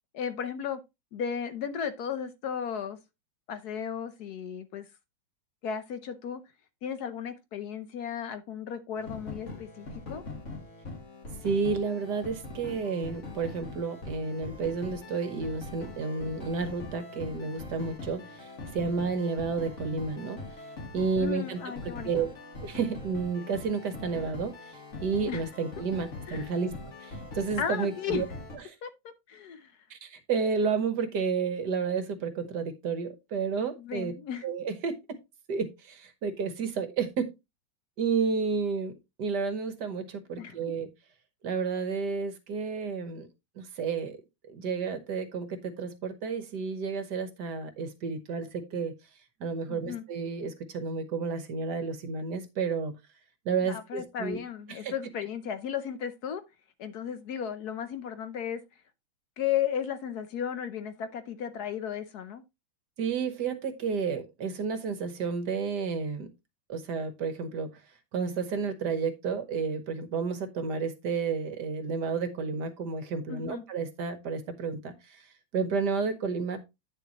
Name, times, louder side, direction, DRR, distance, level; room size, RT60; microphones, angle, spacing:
voice 1, 0.1-0.8 1.1-3.0 3.5-4.9 5.6-6.4 6.8-10.2 21.2-22.1 25.3-25.4 26.3-26.5 27.6-28.2 28.8-28.9 29.3-29.7 33.8-34.4 40.4-40.5 49.7-50.0 53.7-56.4 56.8-58.6 59.4-62.4 73.3-73.6, left 8 dB, 65° left, 1.1 m, -34 dB
sound 1, 9.0-28.6, left 2 dB, 40° left, 2.1 m, -42 dB
voice 2, 11.4-20.6 20.9-22.3 22.6-26.7 27.0-28.3 28.5-28.8 29.9-34.1 34.4-35.0 35.5-37.2 38.0-38.9 39.2-40.9 41.4-43.3 43.6-44.2 44.5-48.9 49.4-52.9 53.4-54.4 54.7-54.9 63.0-66.3 66.7-67.7 68.1-76.6, right 5 dB, 60° right, 1.6 m, -31 dB
9.3 x 6.8 x 2.9 m
omnidirectional pair, 2.1 m